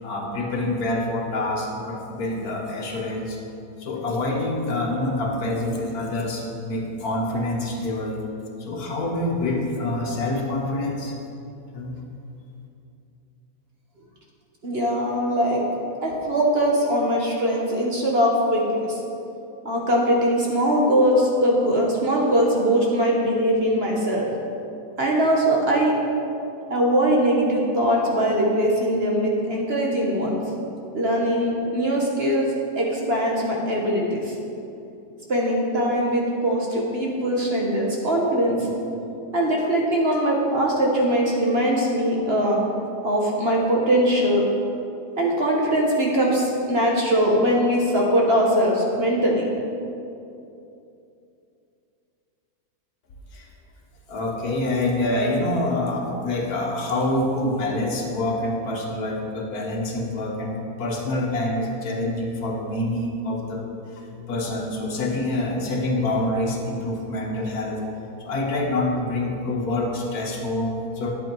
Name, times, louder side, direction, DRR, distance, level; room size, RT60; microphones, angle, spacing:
voice 1, 0.0-3.4 3.8-8.2 8.6-11.1 11.7-12.0 53.3-53.5 54.1-63.6 63.9-67.8 68.2-71.1, left 1 dB, 65° left, 0 dB, 1.6 m, -26 dB
voice 2, 14.6-15.6 16.0-19.0 19.6-24.3 25.0-25.9 26.7-30.4 30.9-34.3 35.3-38.7 39.3-42.6 43.0-44.4 45.2-49.5, equal, 40° right, -2 dB, 1.3 m, -21 dB
10.0 x 7.9 x 4.6 m, 2.7 s
omnidirectional pair, 1.8 m